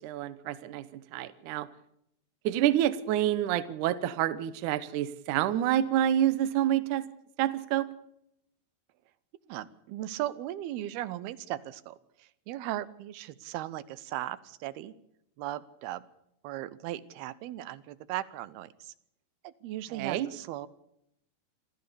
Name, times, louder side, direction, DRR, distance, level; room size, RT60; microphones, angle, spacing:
voice 1, 0.0-1.7 2.4-7.1 7.4-7.9 19.9-20.3, right 12 dB, 70° right, 14 dB, 2.1 m, -28 dB
voice 2, 9.5-14.9 15.4-16.0 16.4-18.9 19.4-20.7, right 14 dB, 85° right, 16 dB, 2.9 m, -37 dB
26.5 x 14.0 x 7.0 m, 0.76 s
omnidirectional pair, 4.4 m